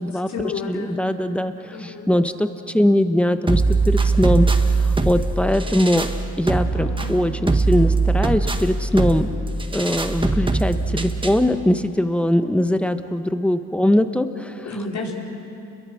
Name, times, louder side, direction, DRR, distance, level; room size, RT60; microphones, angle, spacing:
voice 1, 0.1-1.0 1.7-2.1 14.6-15.2, left 4 dB, 65° left, -3 dB, 4.8 m, -30 dB
voice 2, 0.7-2.5 2.7-4.5 4.8-6.1 6.4-9.3 9.7-14.7, left 1 dB, 5° left, 8 dB, 1.2 m, -21 dB
sound 1, 3.5-11.5, right 3 dB, 15° right, 1.4 m, -21 dB
sound 2, 4.4-11.9, left 2 dB, 85° left, 4.8 m, -44 dB
29.5 x 22.0 x 6.4 m, 2.7 s
cardioid pair, 90°, 30 cm